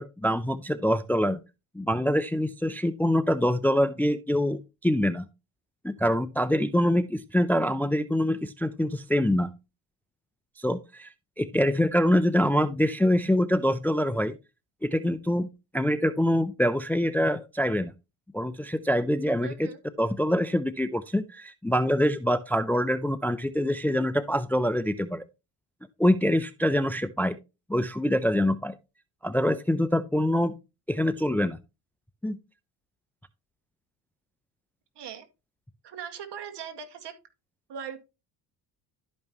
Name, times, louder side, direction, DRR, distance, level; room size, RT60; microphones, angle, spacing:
voice 1, 0.0-1.4 1.7-5.3 5.8-9.5 10.6-11.1 11.4-14.4 14.8-15.5 15.7-17.9 18.3-19.7 20.0-25.2 26.0-27.4 27.7-28.7 29.2-30.5 30.9-31.6 32.2-32.4, equal, 5° left, 0.5 m, -25 dB
voice 2, 19.4-19.8 35.0-35.3 35.8-37.1 37.7-38.0, right 7 dB, 60° right, 2.1 m, -39 dB
12.0 x 5.3 x 3.0 m
supercardioid pair, 75°, 47 cm